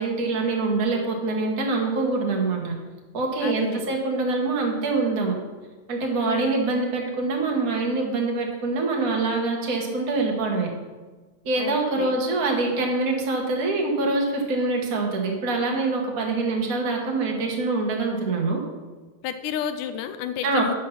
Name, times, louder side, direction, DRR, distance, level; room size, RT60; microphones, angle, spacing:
voice 1, 0.0-2.7 3.1-5.3 5.9-10.7 11.4-18.6 20.4-20.7, right 3 dB, 75° right, 0 dB, 0.8 m, -25 dB
voice 2, 3.4-4.0 6.2-6.6 11.6-12.2 19.2-20.7, left 9 dB, 90° left, 9 dB, 2.2 m, -31 dB
9.5 x 5.5 x 5.8 m, 1.3 s
omnidirectional pair, 3.7 m